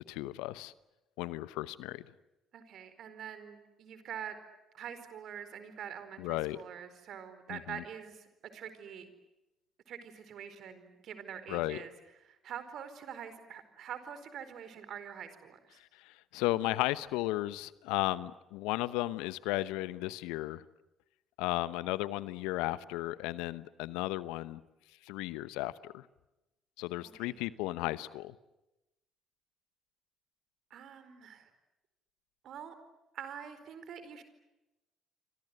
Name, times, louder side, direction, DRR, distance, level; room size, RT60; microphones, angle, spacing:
voice 1, 0.1-0.7 1.2-2.0 6.2-6.6 7.5-7.8 11.5-11.8 16.0-20.6 21.4-24.6 25.0-26.1 26.8-28.3, left 18 dB, 75° left, 17 dB, 0.9 m, -34 dB
voice 2, 2.5-4.4 4.7-9.1 9.9-11.9 12.2-15.8 27.0-27.4 30.7-31.5 32.4-32.7 33.1-34.2, right 8 dB, 60° right, 11 dB, 4.5 m, -45 dB
29.0 x 25.5 x 7.9 m, 0.97 s
hypercardioid pair, 50°, 0 cm